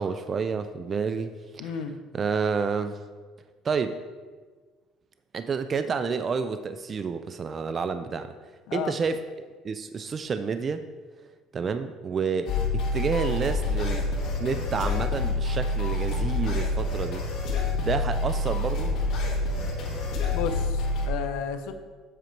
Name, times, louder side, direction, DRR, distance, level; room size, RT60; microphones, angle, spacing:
voice 1, 0.0-1.3 1.6-1.7 2.1-3.0 3.6-4.0 5.3-8.3 8.7-9.2 9.6-10.8 11.5-14.1 14.4-17.2 17.8-19.0, right 5 dB, 30° right, 10 dB, 0.3 m, -29 dB
voice 2, 1.6-2.0 8.7-9.0 20.3-21.7, left 7 dB, 80° left, 8 dB, 0.7 m, -32 dB
sound 1, 12.5-21.1, left 2 dB, 55° left, 1.8 m, -27 dB
7.9 x 5.2 x 4.4 m, 1.4 s
cardioid pair, 145°, 0 cm